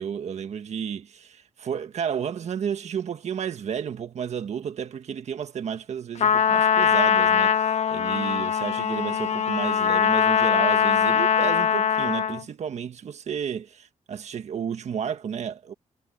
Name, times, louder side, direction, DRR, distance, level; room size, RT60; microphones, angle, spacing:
voice 1, 0.0-15.7, right 8 dB, 60° right, 1.6 m, -32 dB
Trumpet, 6.2-12.4, left 7 dB, 60° left, 1.3 m, -22 dB
wide cardioid pair, 140°, 13 cm